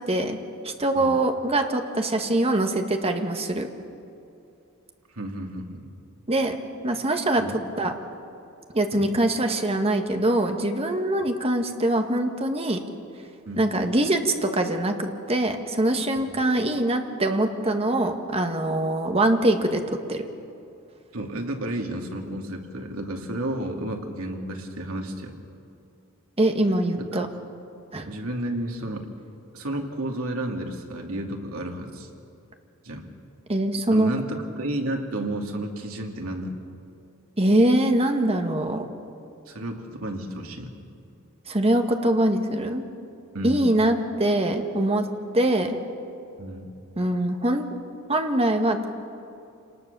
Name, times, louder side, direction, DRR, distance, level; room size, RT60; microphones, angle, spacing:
voice 1, 0.1-0.4 0.6-3.7 6.3-6.6 6.8-7.4 7.8-7.9 8.7-12.8 13.6-20.2 26.4-27.3 27.9-28.1 33.5-34.1 37.4-38.9 41.5-42.8 43.4-45.1 45.3-45.8 47.0-47.6 48.1-48.9, right 1 dB, 30° right, 5 dB, 1.7 m, -23 dB
voice 2, 5.1-5.8 7.4-7.6 8.9-9.1 11.2-11.3 13.5-13.6 16.2-16.4 21.1-25.4 27.0-27.2 28.1-29.1 29.5-32.1 32.8-33.1 33.9-36.5 39.5-40.7 43.3-43.8 46.4-46.7, right 1 dB, 80° right, 2 dB, 2.7 m, -32 dB
27.5 x 19.0 x 6.9 m, 2.7 s
head